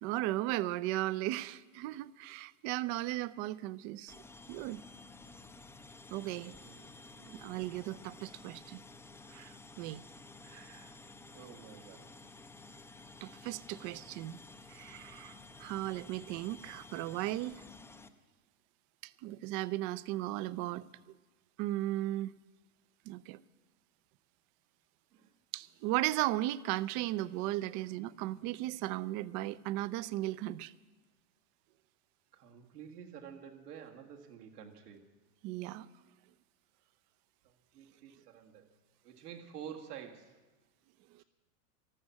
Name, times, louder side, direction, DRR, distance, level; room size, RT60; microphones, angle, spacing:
voice 1, 0.0-4.1 4.5-4.8 6.1-6.5 7.4-8.8 9.3-10.0 13.2-14.4 14.7-17.6 19.0-20.9 21.6-22.3 23.1-23.4 25.5-30.7 35.4-35.9 41.1-41.2, right 16 dB, 40° right, 0.5 m, -36 dB
sound 1, 4.1-18.1, left 3 dB, 5° left, 0.5 m, -53 dB
voice 2, 6.6-7.5 9.8-10.0 10.4-12.1 12.8-13.1 13.8-14.2 25.1-25.3 27.7-27.9 32.3-35.1 37.4-38.7 39.0-40.4 41.2-41.3, right 8 dB, 80° right, 2.0 m, -51 dB
13.0 x 13.0 x 7.4 m
hypercardioid pair, 110°, 45 cm